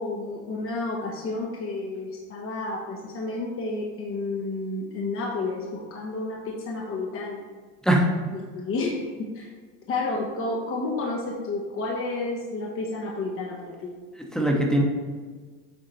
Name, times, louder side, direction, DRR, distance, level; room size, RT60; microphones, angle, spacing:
voice 1, 0.0-7.4 8.3-9.5 9.9-13.9, left 3 dB, 35° left, -2 dB, 1.1 m, -31 dB
voice 2, 14.2-14.8, right 1 dB, ahead, 0 dB, 1.1 m, -21 dB
8.0 x 3.7 x 4.3 m, 1.5 s
supercardioid pair, 115°, 38 cm